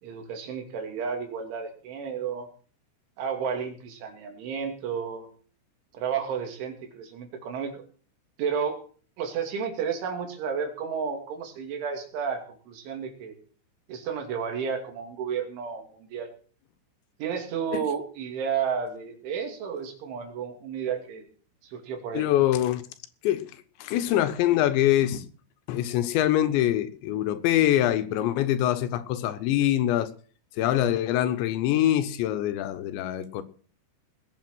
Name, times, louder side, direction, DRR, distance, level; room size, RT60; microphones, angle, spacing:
voice 1, 0.0-2.5 3.2-5.3 5.9-7.8 8.4-8.8 9.2-13.4 13.9-16.3 17.2-21.2 21.6-22.3, right 6 dB, 90° right, 5.2 m, -32 dB
voice 2, 22.1-22.8 23.2-23.5 23.8-25.3 25.7-30.1 30.6-33.4, left 12 dB, 80° left, 3.3 m, -24 dB
19.5 x 8.3 x 6.2 m
omnidirectional pair, 5.3 m